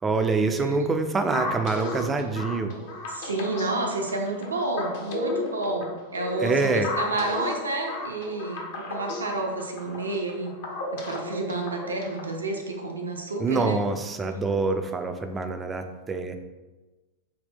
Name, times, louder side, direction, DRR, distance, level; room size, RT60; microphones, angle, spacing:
voice 1, 0.0-2.8 6.4-6.9 13.4-16.4, right 3 dB, 15° right, 7 dB, 0.3 m, -26 dB
sound 1, 1.3-12.4, left 2 dB, 50° left, 0.7 m, -34 dB
voice 2, 3.1-10.5 11.1-13.8, right 2 dB, 75° right, 1 dB, 0.6 m, -30 dB
4.1 x 2.1 x 3.5 m, 1.2 s
figure-of-eight pair, 90°, 0 cm